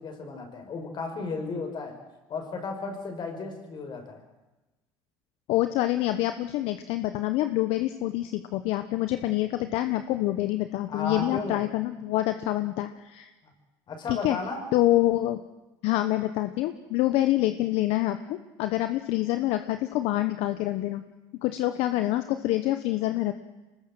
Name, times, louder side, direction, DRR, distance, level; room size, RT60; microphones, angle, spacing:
voice 1, 0.0-2.0 2.3-4.2 10.9-11.7 13.4-13.5 13.9-14.7, left 4 dB, 45° left, 5 dB, 5.8 m, -34 dB
voice 2, 5.5-13.3 14.1-14.4 14.7-15.4 15.8-21.0 21.4-23.3, left 15 dB, 75° left, 9 dB, 1.0 m, -26 dB
25.0 x 20.0 x 7.7 m, 1.1 s
supercardioid pair, 95°, 10 cm